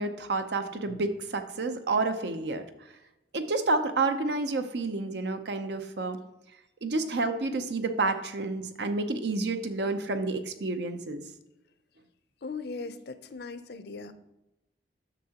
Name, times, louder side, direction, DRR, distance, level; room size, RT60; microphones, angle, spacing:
voice 1, 0.0-2.6 3.3-6.2 6.8-11.2, right 3 dB, 65° right, 8 dB, 0.7 m, -29 dB
voice 2, 12.4-14.1, left 4 dB, 60° left, 11 dB, 0.5 m, -38 dB
9.9 x 6.5 x 2.9 m, 0.92 s
head